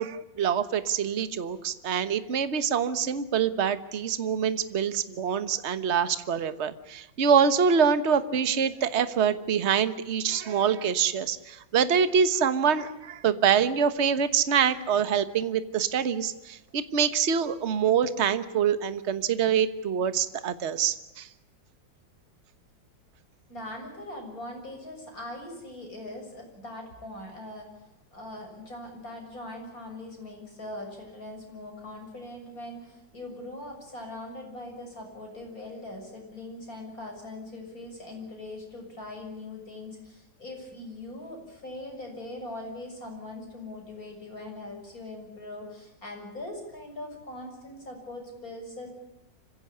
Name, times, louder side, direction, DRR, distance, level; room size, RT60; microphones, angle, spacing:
voice 1, 0.0-21.3, right 7 dB, 40° right, 12 dB, 1.4 m, -25 dB
voice 2, 23.5-48.9, left 1 dB, 50° left, 2 dB, 7.5 m, -41 dB
26.0 x 16.5 x 9.9 m, 0.95 s
omnidirectional pair, 2.0 m